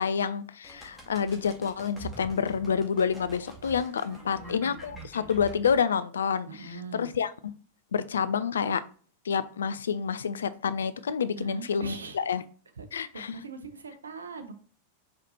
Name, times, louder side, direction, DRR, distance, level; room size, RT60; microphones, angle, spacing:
voice 1, 0.0-7.5 7.9-8.8 9.2-12.4 12.9-13.4, left 6 dB, 65° left, 0.3 m, -28 dB
sound 1, 0.6-5.8, right 2 dB, 5° left, 1.5 m, -46 dB
voice 2, 4.1-5.3 6.5-7.1 11.3-12.3 12.8-12.9 13.1-14.5, right 4 dB, 75° right, 0.7 m, -42 dB
4.4 x 4.0 x 2.7 m
figure-of-eight pair, 90°, 0 cm